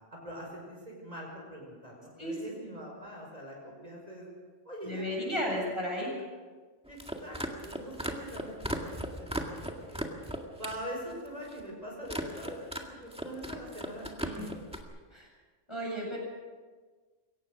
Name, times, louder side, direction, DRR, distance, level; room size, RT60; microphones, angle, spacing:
voice 1, 0.1-4.3 4.6-5.5 6.9-10.0 10.6-14.6, equal, 35° right, -2 dB, 5.4 m, -43 dB
voice 2, 4.8-6.1 15.1-15.3 15.7-16.2, equal, 25° left, -3 dB, 7.6 m, -33 dB
sound 1, 6.9-10.8 11.1-11.6 12.0-12.8 13.1-14.8, equal, 5° right, 1.9 m, -37 dB
22.5 x 18.0 x 6.4 m, 1.4 s
omnidirectional pair, 1.2 m